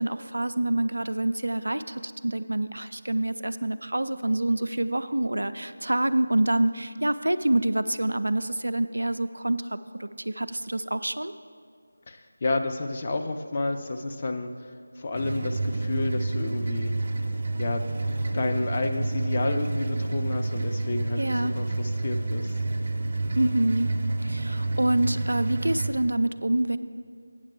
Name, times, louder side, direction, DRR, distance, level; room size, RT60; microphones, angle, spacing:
voice 1, 0.0-11.3 21.2-21.6 23.4-23.9 24.2-26.8, right 1 dB, 80° right, 11 dB, 0.4 m, -26 dB
voice 2, 12.1-16.9 17.6-22.6, left 2 dB, 30° left, 4 dB, 0.5 m, -30 dB
sound 1, 15.1-25.9, right 2 dB, 35° right, 0.6 m, -29 dB
8.7 x 6.5 x 6.0 m, 2.1 s
figure-of-eight pair, 165°, 0 cm